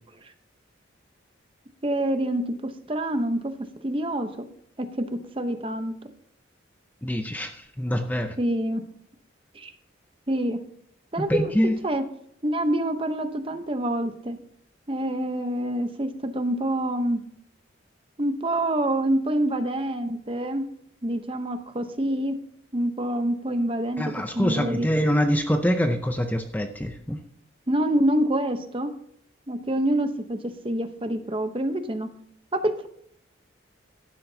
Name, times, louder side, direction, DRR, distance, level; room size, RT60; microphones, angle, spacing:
voice 1, 1.8-3.5 3.8-4.4 4.8-5.9 8.4-8.8 9.5-9.7 10.3-10.6 11.1-11.5 11.8-12.0 12.4-14.4 14.9-17.2 18.2-20.6 21.0-22.4 22.7-24.0 24.3-24.9 27.7-28.9 29.5-32.1 32.5-32.9, right 1 dB, 25° right, 8 dB, 0.8 m, -26 dB
voice 2, 7.0-8.4 11.2-11.8 24.0-27.2, equal, 10° left, 6 dB, 0.5 m, -25 dB
15.5 x 12.0 x 2.8 m, 0.67 s
head